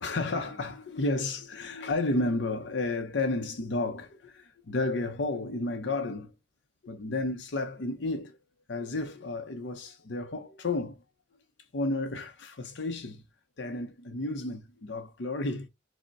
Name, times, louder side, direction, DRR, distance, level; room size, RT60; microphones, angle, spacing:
voice 1, 0.0-6.3 6.8-8.4 8.7-11.0 11.7-13.2 13.6-15.7, left 2 dB, 65° left, 0.6 m, -32 dB
4.9 x 2.1 x 4.6 m
head